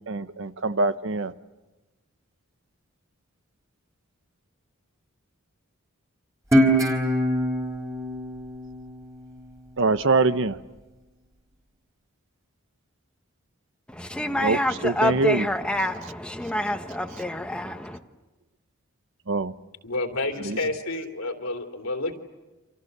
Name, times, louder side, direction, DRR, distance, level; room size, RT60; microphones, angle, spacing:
voice 1, 0.1-1.3 9.8-10.6 14.4-14.6 14.8-15.5 19.3-19.5 20.5-20.6, right 3 dB, 65° right, 12 dB, 1.0 m, -23 dB
Guitar, 6.5-9.7, equal, 15° right, 3.5 m, -24 dB
voice 2, 13.9-18.0, left 1 dB, 5° left, 6 dB, 1.2 m, -27 dB
voice 3, 19.8-22.2, left 2 dB, 85° left, 3 dB, 3.1 m, -29 dB
29.0 x 27.0 x 6.8 m, 1.1 s
head